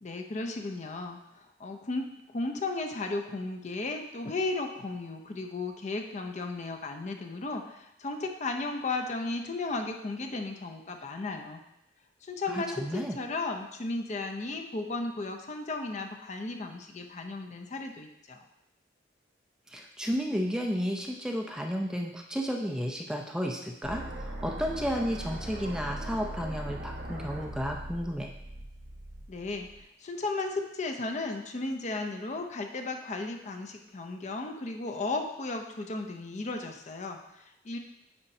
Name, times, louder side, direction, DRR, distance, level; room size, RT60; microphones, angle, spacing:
voice 1, 0.0-11.6 12.2-18.4 29.3-37.8, left 3 dB, 40° left, 4 dB, 0.6 m, -35 dB
voice 2, 12.5-13.2 19.7-28.3, equal, 5° right, 1 dB, 0.5 m, -32 dB
sound 1, 23.8-29.8, right 1 dB, 75° right, 1.2 m, -40 dB
9.6 x 4.3 x 2.7 m, 0.84 s
head